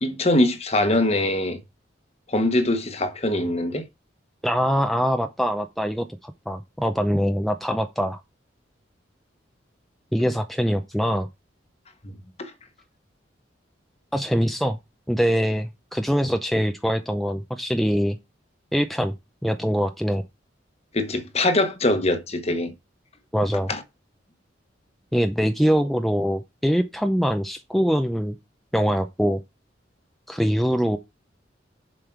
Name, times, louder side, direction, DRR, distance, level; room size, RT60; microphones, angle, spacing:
voice 1, 0.0-1.6 2.3-3.8 12.0-12.1 12.4-12.5 20.9-22.7 23.7-23.8, left 1 dB, 35° left, 1.2 m, -22 dB
voice 2, 4.4-8.2 10.1-11.3 14.1-14.8 15.1-18.2 18.7-19.1 19.4-20.2 23.3-23.7 25.1-28.4 28.7-29.4 30.3-31.0, equal, ahead, 0.5 m, -23 dB
7.2 x 5.3 x 4.6 m
head